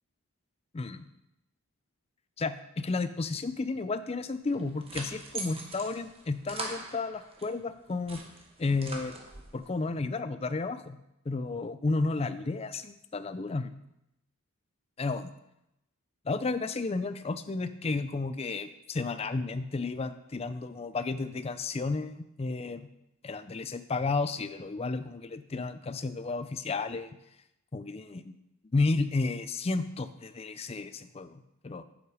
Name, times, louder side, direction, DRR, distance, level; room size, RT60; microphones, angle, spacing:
voice 1, 2.4-8.2 8.6-9.2 9.5-11.0 11.3-13.7 15.0-15.2 16.3-22.9 23.2-27.1 27.7-28.3 28.7-31.8, left 3 dB, 25° left, 11 dB, 0.4 m, -32 dB
sound 1, 4.5-7.5 7.9-9.6, right 2 dB, 25° right, 1.0 m, -42 dB
8.0 x 7.3 x 4.8 m, 0.85 s
head